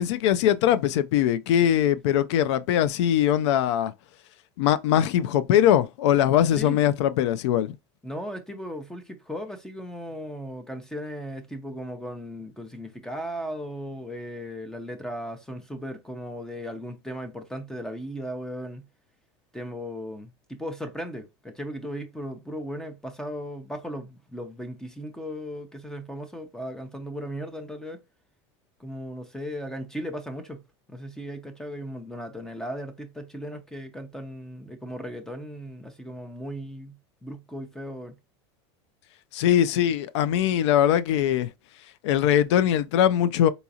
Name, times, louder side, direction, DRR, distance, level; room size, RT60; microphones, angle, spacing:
voice 1, 0.0-3.9 4.6-7.7 39.3-41.5 42.0-43.5, left 10 dB, 80° left, 0.4 m, -21 dB
voice 2, 8.0-18.8 19.5-28.0 28.8-30.6 30.9-36.9 37.2-38.1, equal, 5° left, 0.6 m, -36 dB
4.0 x 2.4 x 2.7 m
supercardioid pair, 125°, 15 cm